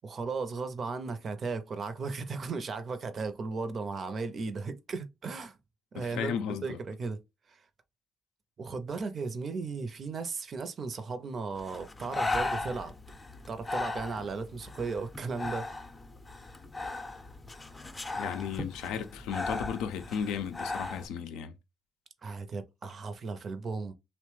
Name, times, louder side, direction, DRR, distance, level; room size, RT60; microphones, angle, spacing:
voice 1, 0.0-5.6 5.9-7.2 7.5-7.6 8.6-12.9 13.5-15.7 22.2-23.9, right 4 dB, 50° right, 0.5 m, -36 dB
voice 2, 6.0-6.8 18.1-21.5, left 7 dB, 80° left, 0.4 m, -35 dB
Breathing, 11.6-21.1, left 2 dB, 25° left, 0.5 m, -37 dB
2.9 x 2.1 x 3.1 m
hypercardioid pair, 55°, 0 cm